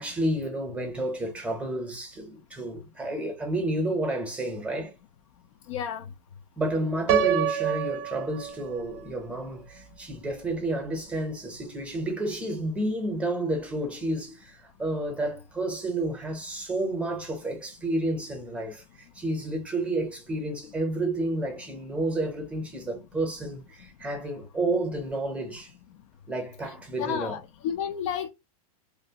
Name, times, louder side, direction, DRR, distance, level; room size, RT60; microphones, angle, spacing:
voice 1, 0.0-4.9 6.6-25.7 26.3-27.4, right 1 dB, 5° right, 0.7 m, -30 dB
voice 2, 5.7-6.1 27.0-28.3, left 8 dB, 55° left, 0.5 m, -31 dB
Piano, 7.1-9.0, right 10 dB, 45° right, 0.4 m, -27 dB
2.8 x 2.5 x 2.8 m
supercardioid pair, 155°, 19 cm